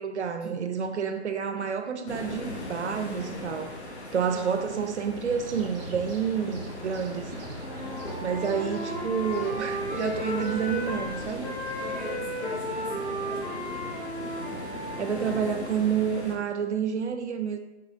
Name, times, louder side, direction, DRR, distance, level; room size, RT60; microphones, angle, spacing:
voice 1, 0.0-3.8 4.1-7.3 8.2-11.5 15.0-17.6, right 7 dB, 80° right, 0.6 m, -29 dB
sound 1, 2.1-16.4, left 2 dB, 75° left, 1.1 m, -39 dB
voice 2, 4.3-4.6 11.7-13.9, left 1 dB, 5° right, 0.6 m, -42 dB
sound 2, 5.2-11.9, right 1 dB, 60° right, 0.9 m, -43 dB
Wind instrument woodwind instrument, 7.6-11.1 11.4-15.6, equal, 25° left, 1.5 m, -35 dB
4.8 x 4.3 x 2.5 m
hypercardioid pair, 135°, 33 cm